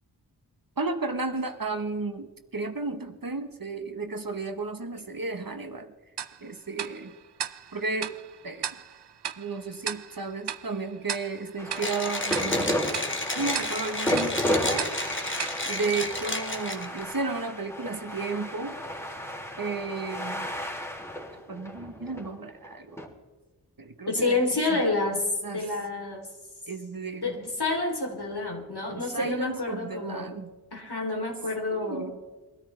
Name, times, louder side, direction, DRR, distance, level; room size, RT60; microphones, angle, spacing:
voice 1, 0.8-5.9 6.4-7.1 7.7-8.1 8.4-8.7 9.4-12.8 13.3-14.9 15.6-18.8 19.6-20.5 21.5-23.1 23.8-24.9 25.4-25.8 26.7-27.4 28.9-30.5 31.7-32.2, right 3 dB, 55° right, 7 dB, 1.3 m, -33 dB
Tick-tock, 6.2-16.6, right 8 dB, 70° right, 0.6 m, -38 dB
sound 1, 11.6-23.0, left 1 dB, 5° left, 3.4 m, -33 dB
Mechanisms, 11.8-17.0, left 2 dB, 30° left, 1.6 m, -32 dB
voice 2, 24.1-25.2 25.5-26.3 27.2-30.3 30.7-32.1, left 2 dB, 65° left, 0 dB, 3.6 m, -28 dB
22.5 x 13.0 x 3.4 m, 1.2 s
wide cardioid pair, 45°, 42 cm